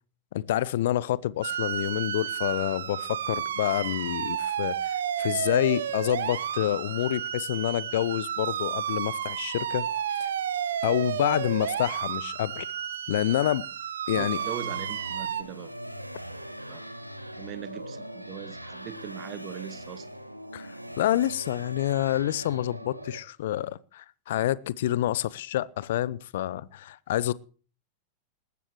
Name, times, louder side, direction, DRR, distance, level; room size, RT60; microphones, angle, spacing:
voice 1, 0.3-10.3 10.8-12.7 13.1-13.6 14.1-14.4 20.5-27.3, left 13 dB, 55° left, 0.6 m, -28 dB
sound 1, 1.4-15.4, right 9 dB, 65° right, 1.0 m, -32 dB
voice 2, 14.1-15.7 16.7-16.9 17.4-20.1, right 12 dB, 35° right, 1.1 m, -40 dB
sound 2, 14.3-23.2, equal, 90° right, 1.2 m, -41 dB
20.0 x 15.5 x 3.1 m
figure-of-eight pair, 90°, 0 cm